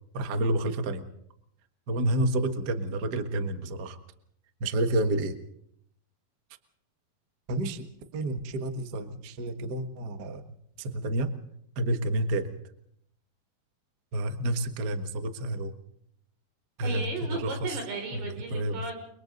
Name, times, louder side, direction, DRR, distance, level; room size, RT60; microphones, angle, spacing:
voice 1, 0.1-1.0 1.9-4.0 4.6-5.4 7.5-7.8 8.1-11.3 11.7-12.5 14.1-15.7 16.8-17.7 18.5-18.8, right 1 dB, 70° right, 7 dB, 0.9 m, -29 dB
voice 2, 16.8-19.0, right 3 dB, 90° right, 2 dB, 7.8 m, -35 dB
30.0 x 24.5 x 4.0 m, 0.72 s
omnidirectional pair, 4.5 m